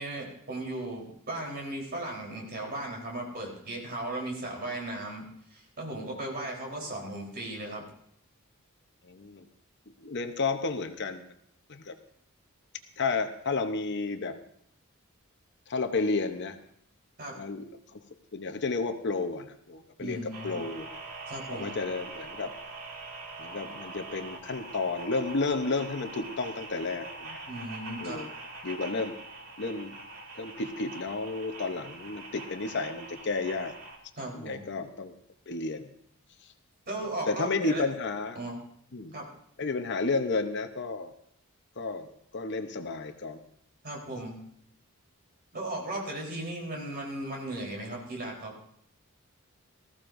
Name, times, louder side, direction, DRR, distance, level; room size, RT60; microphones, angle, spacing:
voice 1, 0.0-7.9 17.2-17.4 20.0-20.6 21.3-21.7 27.5-28.2 34.2-34.7 36.9-37.8 38.4-38.6 39.1-39.3 43.8-44.4 45.5-48.5, right 1 dB, 45° right, 0 dB, 3.8 m, -36 dB
voice 2, 9.1-9.5 10.0-11.3 11.7-11.9 13.0-14.3 15.7-16.6 17.3-18.0 18.3-20.9 21.5-22.5 23.4-27.4 28.0-28.3 28.6-29.1 29.6-29.9 30.4-33.7 34.3-35.1 35.5-35.9 37.3-38.4 38.9-39.1 39.6-41.1 41.8-43.4, left 3 dB, 50° left, 7 dB, 0.8 m, -32 dB
sound 1, 20.3-34.0, right 2 dB, 70° right, 2.4 m, -43 dB
19.0 x 14.5 x 2.6 m, 0.69 s
head